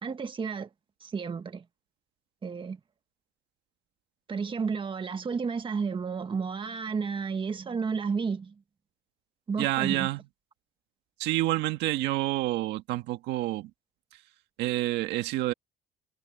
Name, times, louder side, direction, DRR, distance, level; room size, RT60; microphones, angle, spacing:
voice 1, 0.0-0.7 1.0-1.6 2.4-2.8 4.3-8.6 9.5-10.1, right 5 dB, 30° right, 1.6 m, -32 dB
voice 2, 9.6-10.2 11.2-13.7 14.1-14.2 14.6-15.5, right 16 dB, 90° right, 1.7 m, -28 dB
cardioid pair, 110°, 17 cm